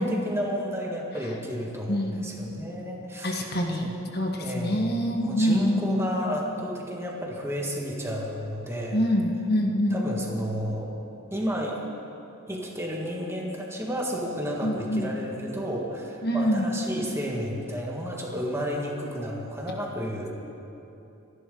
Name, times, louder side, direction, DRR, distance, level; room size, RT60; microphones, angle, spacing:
voice 1, 0.0-3.9 4.4-9.1 9.9-10.9 11.3-11.8 12.5-20.3, equal, 15° right, -1 dB, 1.8 m, -32 dB
voice 2, 1.9-2.3 3.2-3.9 4.1-6.0 8.9-10.0 14.6-15.1 16.2-16.7, equal, 50° left, 1 dB, 1.6 m, -25 dB
25.5 x 11.0 x 3.9 m, 2.8 s
head